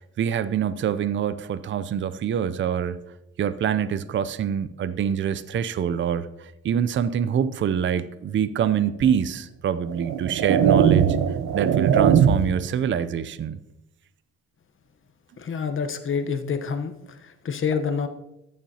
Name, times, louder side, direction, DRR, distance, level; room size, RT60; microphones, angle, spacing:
voice 1, 0.0-3.0 3.4-11.2 11.5-13.6, right 8 dB, 40° right, 14 dB, 0.5 m, -25 dB
sound 1, 9.0-9.2 9.9-12.7, right 8 dB, 70° right, 0.7 m, -20 dB
voice 2, 15.4-18.1, left 6 dB, 40° left, 8 dB, 1.0 m, -27 dB
14.5 x 7.2 x 2.8 m, 0.90 s
cardioid pair, 90°, 30 cm